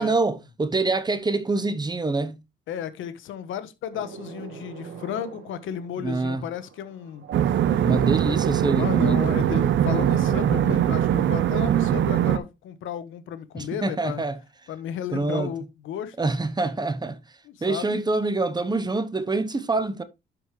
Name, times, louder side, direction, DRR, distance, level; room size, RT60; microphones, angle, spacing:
voice 1, 0.0-2.4 6.0-6.4 7.8-9.2 13.5-14.4 15.1-15.5 16.2-17.2 17.6-20.0, right 3 dB, 20° right, 0.9 m, -25 dB
voice 2, 2.7-7.3 7.7-8.3 8.7-14.2 14.7-16.3 17.4-18.0, left 9 dB, 80° left, 1.1 m, -34 dB
sound 1, 3.9-11.5, right 8 dB, 90° right, 2.4 m, -41 dB
sound 2, 7.3-12.4, right 10 dB, 70° right, 0.8 m, -21 dB
11.0 x 5.0 x 3.1 m
cardioid pair, 90°, 20 cm